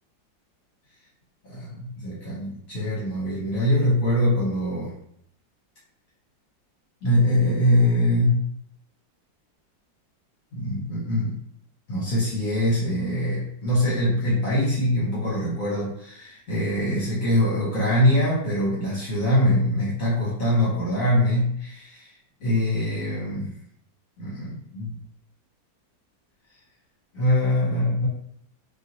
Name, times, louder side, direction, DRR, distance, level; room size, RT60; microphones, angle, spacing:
voice 1, 1.5-4.9 7.0-8.5 10.5-11.4 11.9-22.1 22.4-23.6 24.2-24.9 27.1-28.1, left 1 dB, 55° left, -7 dB, 1.2 m, -23 dB
3.0 x 2.7 x 2.6 m, 0.69 s
omnidirectional pair, 2.1 m